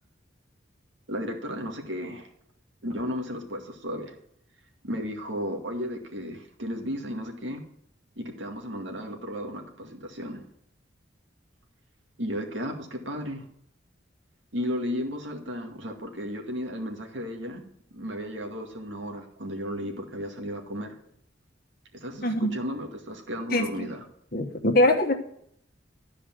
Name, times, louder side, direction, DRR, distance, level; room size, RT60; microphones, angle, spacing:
voice 1, 1.1-2.3 2.8-4.1 4.8-7.6 8.2-10.4 12.2-13.5 14.5-17.6 17.9-20.9 21.9-24.0, equal, 75° right, 2 dB, 2.1 m, -34 dB
voice 2, 23.5-23.9 24.3-25.1, left 1 dB, 50° left, 4 dB, 1.3 m, -23 dB
13.0 x 5.0 x 7.7 m, 0.70 s
head